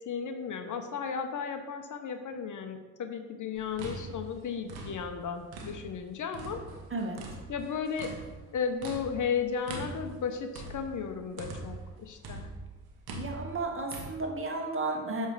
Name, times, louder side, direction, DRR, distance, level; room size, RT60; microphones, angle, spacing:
voice 1, 0.1-6.7 7.5-8.1 8.5-12.5, left 6 dB, 50° left, 7 dB, 0.7 m, -34 dB
sound 1, 3.6-6.0 6.3-11.9 12.2-14.1, right 2 dB, 75° right, 1.1 m, -42 dB
voice 2, 13.1-15.3, right 2 dB, 35° right, 1 dB, 1.5 m, -33 dB
7.5 x 3.4 x 4.7 m, 1.2 s
hypercardioid pair, 50°, 38 cm